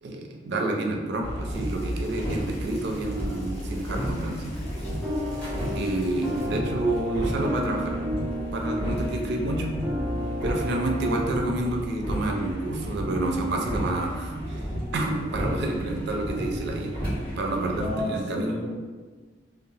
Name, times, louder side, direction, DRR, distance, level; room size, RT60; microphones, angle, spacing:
voice 1, 0.0-4.5 5.7-7.9 8.5-9.8 10.4-14.7 14.9-17.0 17.4-18.6, right 2 dB, 65° right, 1 dB, 0.4 m, -29 dB
sound 1, 1.2-18.0, equal, 50° left, 1.5 m, -33 dB
sound 2, 1.5-6.5, equal, 35° left, 0.7 m, -47 dB
sound 3, 4.8-11.3, equal, ahead, 0.4 m, -33 dB
voice 2, 17.8-18.7, left 1 dB, 75° left, -1 dB, 0.5 m, -31 dB
2.9 x 2.0 x 2.7 m, 1.4 s
head